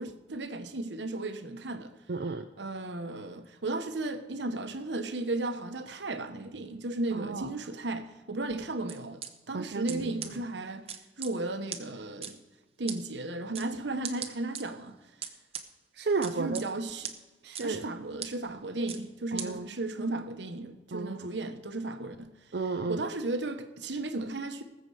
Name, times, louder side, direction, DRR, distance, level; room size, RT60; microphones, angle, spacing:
voice 1, 0.0-1.9 2.6-9.2 9.5-10.9 11.2-12.4 12.8-15.0 16.4-17.1 17.6-22.3 22.9-24.6, right 2 dB, 90° right, 1.2 m, -35 dB
voice 2, 2.1-2.5 7.1-7.5 9.5-10.1 16.0-16.6 17.4-17.8 19.3-19.7 20.9-21.3 22.5-23.0, right 3 dB, 65° right, 0.6 m, -32 dB
sound 1, 8.9-9.3 9.9-10.0 10.2-10.3 10.9-11.3 11.7-11.8 12.2-12.3 12.9-13.0 13.5-13.7 14.0-14.6 15.2-15.6 16.2-16.6 17.0-17.1 17.5-17.7 18.2-18.3 18.9-19.0 19.4-19.5, right 8 dB, 35° right, 1.0 m, -37 dB
19.5 x 7.8 x 4.9 m
head